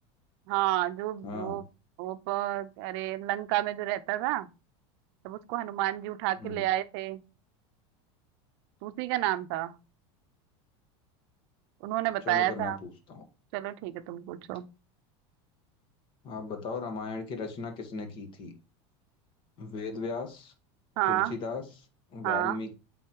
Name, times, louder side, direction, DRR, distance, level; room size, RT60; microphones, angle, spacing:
voice 1, 0.5-1.6 2.0-4.5 5.2-7.2 8.8-9.8 11.8-12.8 13.5-14.7 21.0-21.3 22.2-22.6, right 15 dB, 60° right, 0.6 m, -30 dB
voice 2, 1.2-1.6 6.4-6.7 12.2-13.2 16.2-18.5 19.6-20.5 21.1-22.7, left 4 dB, 35° left, 1.4 m, -37 dB
8.2 x 4.1 x 3.0 m
supercardioid pair, 155°, 15 cm